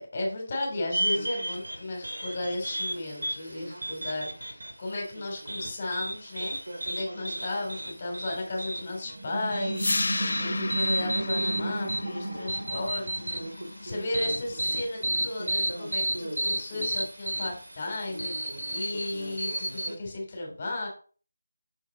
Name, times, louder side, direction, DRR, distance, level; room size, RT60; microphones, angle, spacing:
voice 1, 0.1-6.6 6.8-20.9, left 2 dB, 35° left, 0 dB, 3.3 m, -34 dB
sound 1, 0.9-20.0, right 1 dB, 80° right, 2.5 m, -33 dB
sound 2, 9.0-13.5, right 3 dB, 65° right, 2.3 m, -35 dB
sound 3, 9.7-15.8, left 2 dB, 65° left, 0.8 m, -34 dB
6.6 x 6.4 x 4.1 m, 0.40 s
figure-of-eight pair, 165°, 0 cm